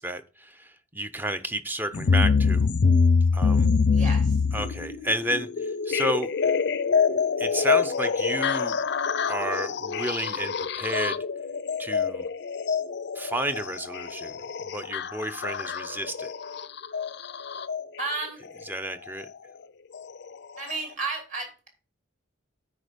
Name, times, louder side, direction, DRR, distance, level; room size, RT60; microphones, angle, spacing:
voice 1, 0.0-2.7 3.3-3.7 4.5-6.3 7.4-8.8 9.2-11.2 11.8-12.2 13.1-14.3 14.7-16.3 18.7-19.3, right 1 dB, 10° right, 10 dB, 0.5 m, -31 dB
sound 1, 1.9-17.8 19.1-19.2 19.9-20.0 20.7-20.8, left 5 dB, 55° left, 0.5 m, -25 dB
voice 2, 3.9-4.4 5.0-5.2 18.0-18.4 20.6-21.7, right 3 dB, 35° right, 2 dB, 2.8 m, -33 dB
9.5 x 4.5 x 5.1 m, 0.36 s
head